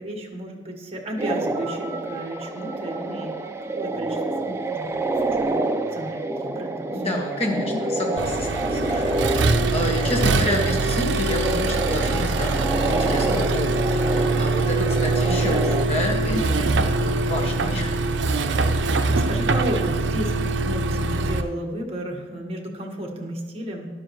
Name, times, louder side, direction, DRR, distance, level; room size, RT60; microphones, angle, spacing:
voice 1, 0.0-5.6 5.9-7.2 9.9-10.1 14.6-15.0 15.5-15.8 16.3-16.8 19.1-23.9, right 1 dB, 30° right, 0 dB, 1.5 m, -33 dB
sound 1, 1.2-15.9, right 2 dB, 15° right, 0.5 m, -28 dB
sound 2, 1.5-5.9 6.8-6.9, right 2 dB, 70° left, 1.9 m, -45 dB
voice 2, 6.9-18.0, equal, 35° left, 0 dB, 1.8 m, -29 dB
Accelerating revving vroom, 8.2-21.4, right 2 dB, 70° right, 0.6 m, -23 dB
12.5 x 12.0 x 3.1 m, 1.4 s
head